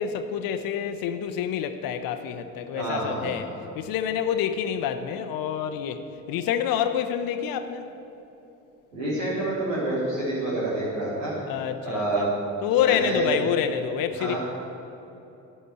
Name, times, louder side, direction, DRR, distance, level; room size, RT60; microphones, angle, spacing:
voice 1, 0.0-3.5 3.7-7.9 11.5-12.2 12.6-14.3, left 9 dB, 60° left, 8 dB, 0.8 m, -27 dB
voice 2, 2.7-3.5 8.9-11.3 11.8-12.3 12.8-13.4 14.1-14.4, right 2 dB, 85° right, -10 dB, 3.6 m, -28 dB
9.4 x 8.7 x 9.4 m, 3.0 s
hypercardioid pair, 50°, 39 cm